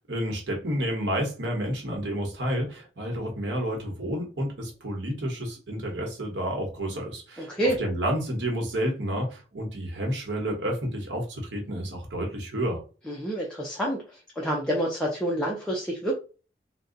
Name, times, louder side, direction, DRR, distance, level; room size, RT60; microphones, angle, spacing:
voice 1, 0.1-7.5 7.8-12.8, equal, 90° right, 1.2 m, -30 dB
voice 2, 7.4-7.8 13.1-14.0 14.4-16.1, right 1 dB, 5° left, 0.5 m, -27 dB
2.7 x 2.3 x 3.8 m
head